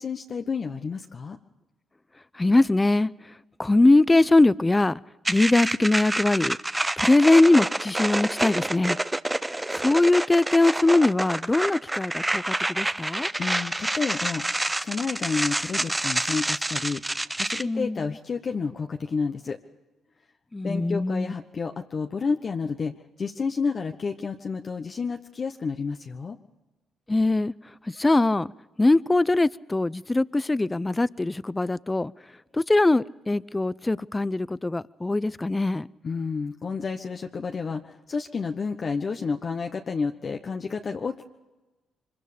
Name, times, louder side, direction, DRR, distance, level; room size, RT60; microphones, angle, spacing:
voice 1, 0.0-1.4 13.4-19.6 20.6-26.4 36.0-41.2, left 5 dB, 45° left, 4 dB, 1.1 m, -30 dB
voice 2, 2.3-3.1 3.6-5.0 5.3-6.6 7.0-9.0 9.8-13.3 17.6-18.0 20.5-21.3 27.1-27.5 27.9-28.5 28.8-32.1 32.5-35.9, left 2 dB, 20° left, 19 dB, 0.6 m, -21 dB
sound 1, 5.2-17.6, right 1 dB, 15° right, 0.7 m, -28 dB
24.5 x 22.5 x 5.1 m, 1.1 s
supercardioid pair, 60°, 0 cm